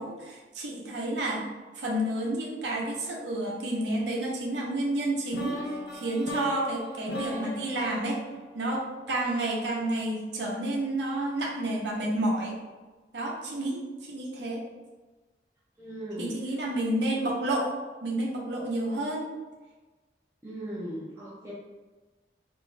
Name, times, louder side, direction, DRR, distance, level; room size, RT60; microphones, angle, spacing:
voice 1, 0.0-1.5 1.7-8.2 8.5-12.6 13.1-14.6 16.2-17.7 18.0-19.3, right 1 dB, 85° right, -2 dB, 0.7 m, -30 dB
sound 1, 5.3-9.3, equal, 70° left, 0.6 m, -37 dB
voice 2, 15.8-16.3 20.4-21.5, right 1 dB, 15° right, -9 dB, 0.5 m, -38 dB
2.6 x 2.2 x 3.1 m, 1.2 s
head